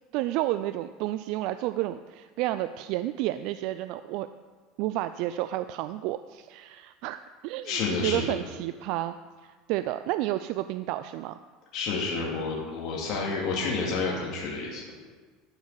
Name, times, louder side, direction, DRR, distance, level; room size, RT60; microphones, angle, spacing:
voice 1, 0.1-4.3 4.8-9.1 9.4-11.4, right 15 dB, 65° right, 12 dB, 0.3 m, -31 dB
voice 2, 7.6-8.4 11.7-14.8, left 4 dB, 55° left, -3 dB, 2.5 m, -29 dB
12.0 x 5.2 x 6.7 m, 1.4 s
hypercardioid pair, 80°, 0 cm